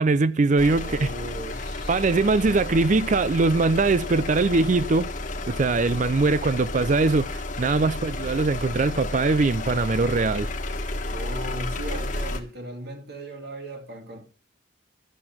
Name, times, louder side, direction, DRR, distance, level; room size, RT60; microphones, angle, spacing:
voice 1, 0.0-1.1 1.9-5.1 5.5-10.5, right 3 dB, 40° right, 0.4 m, -22 dB
sound 1, 0.6-12.4, left 2 dB, 40° left, 1.4 m, -32 dB
voice 2, 0.7-2.6 11.1-14.2, right 1 dB, 55° right, 2.5 m, -38 dB
12.5 x 7.9 x 5.8 m
head